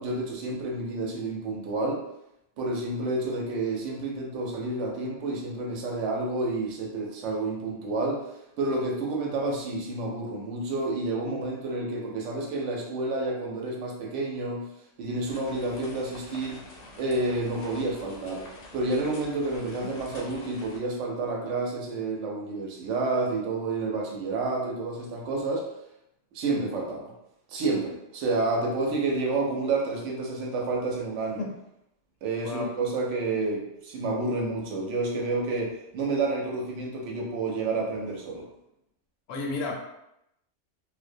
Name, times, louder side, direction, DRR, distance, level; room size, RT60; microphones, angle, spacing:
voice 1, 0.0-2.0 2.6-8.2 8.6-14.6 15.0-16.6 17.0-18.4 18.7-25.7 26.3-27.1 27.5-31.4 32.2-38.5, right 2 dB, 75° right, 0 dB, 0.9 m, -29 dB
sound 1, 15.2-20.8, left 2 dB, 60° left, 0.7 m, -46 dB
voice 2, 39.3-39.7, left 3 dB, 85° left, 0 dB, 1.0 m, -31 dB
2.4 x 2.0 x 2.5 m, 0.82 s
omnidirectional pair, 1.3 m